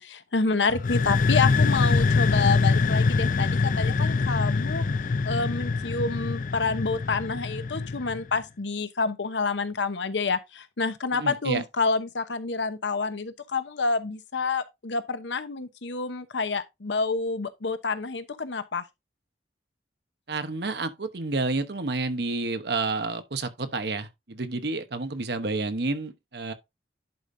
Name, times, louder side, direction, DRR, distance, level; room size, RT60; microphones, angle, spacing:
voice 1, 0.0-4.8 5.2-18.8, left 4 dB, 85° left, 0.9 m, -28 dB
sound 1, 0.7-8.3, left 4 dB, 50° left, 0.4 m, -24 dB
voice 2, 11.1-11.6 20.3-26.5, right 3 dB, 65° right, 1.0 m, -30 dB
10.5 x 5.1 x 2.7 m
head